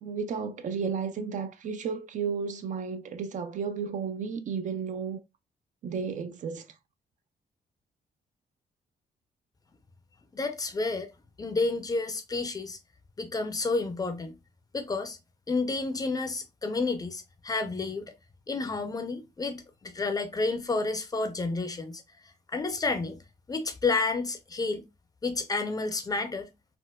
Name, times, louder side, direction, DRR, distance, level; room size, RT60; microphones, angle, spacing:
voice 1, 0.0-5.2 5.8-6.7, right 6 dB, 50° right, 0.4 m, -33 dB
voice 2, 10.3-11.1 11.4-12.8 13.2-14.3 14.7-15.2 15.5-18.1 18.5-22.0 22.5-23.2 23.5-24.8 25.2-26.5, left 3 dB, 25° left, 0.5 m, -30 dB
4.2 x 2.1 x 2.2 m
cardioid pair, 130°, 16 cm